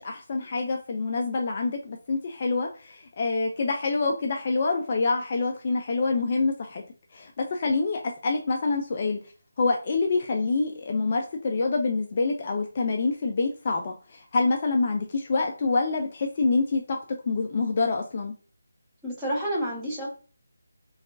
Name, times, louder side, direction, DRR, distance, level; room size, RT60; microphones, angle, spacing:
voice 1, 0.0-6.8 7.1-9.2 9.6-17.0 17.3-18.3, left 3 dB, 30° left, 2 dB, 0.3 m, -26 dB
voice 2, 19.0-20.1, equal, 10° right, -6 dB, 0.8 m, -29 dB
3.5 x 2.4 x 2.4 m, 0.38 s
figure-of-eight pair, 155°, 0 cm